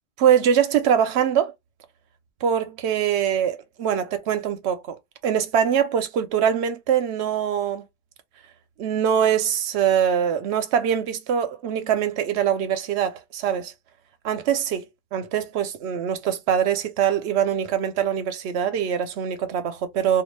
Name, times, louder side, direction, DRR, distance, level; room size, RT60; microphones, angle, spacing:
voice 1, 0.2-1.5 2.4-5.0 5.2-7.9 8.8-13.7 14.2-14.9 15.1-20.2, right 8 dB, 90° right, 0.9 m, -23 dB
2.4 x 2.3 x 3.1 m
omnidirectional pair, 1.1 m